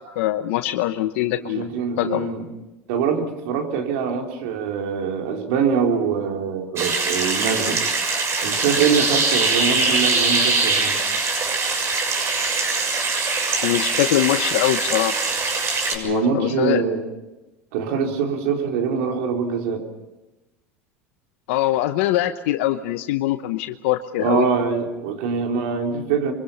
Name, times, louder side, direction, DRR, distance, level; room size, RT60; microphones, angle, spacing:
voice 1, 0.0-1.7 2.0-2.3 13.6-15.2 15.9-16.8 21.5-24.5, left 14 dB, 75° left, 8 dB, 1.0 m, -23 dB
voice 2, 1.4-2.4 2.9-7.8 8.4-11.1 16.0-17.0 17.7-19.8 24.2-26.3, right 6 dB, 75° right, 2 dB, 4.1 m, -24 dB
sound 1, 6.8-15.9, right 3 dB, 40° right, 6.8 m, -22 dB
25.5 x 24.5 x 5.8 m, 1.0 s
hypercardioid pair, 90°, 7 cm